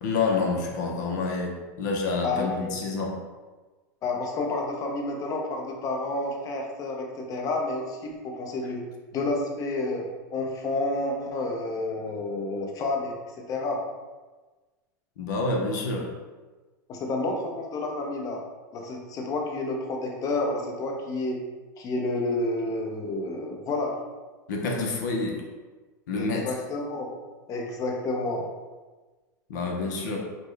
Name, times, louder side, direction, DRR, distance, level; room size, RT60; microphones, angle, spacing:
voice 1, 0.0-3.2 15.2-16.2 24.5-25.4 26.1-26.4 29.5-30.2, left 3 dB, 75° left, 1 dB, 0.6 m, -28 dB
voice 2, 2.2-2.7 4.0-8.8 9.1-10.0 10.3-13.1 13.5-13.8 16.9-18.4 18.7-21.4 21.8-23.9 26.2-27.1 27.5-28.4, left 2 dB, 40° left, 1 dB, 0.6 m, -30 dB
4.1 x 2.1 x 3.2 m, 1.3 s
hypercardioid pair, 110°, 10 cm